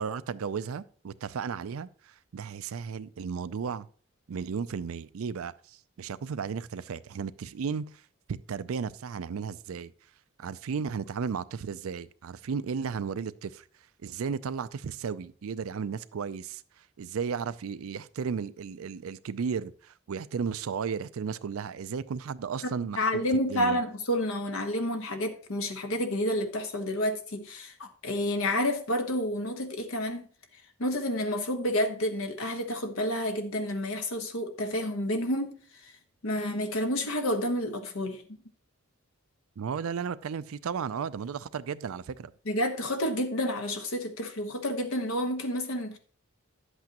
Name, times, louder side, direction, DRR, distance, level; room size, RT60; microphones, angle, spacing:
voice 1, 0.0-3.9 4.3-8.0 8.3-9.9 10.4-13.6 14.0-16.6 17.0-23.2 23.5-23.8 39.6-42.3, right 6 dB, 75° right, 0.4 m, -34 dB
voice 2, 22.9-30.3 30.8-35.5 35.8-35.9 36.2-38.2 42.4-46.0, left 1 dB, 70° left, 1.2 m, -29 dB
10.5 x 8.1 x 2.9 m
head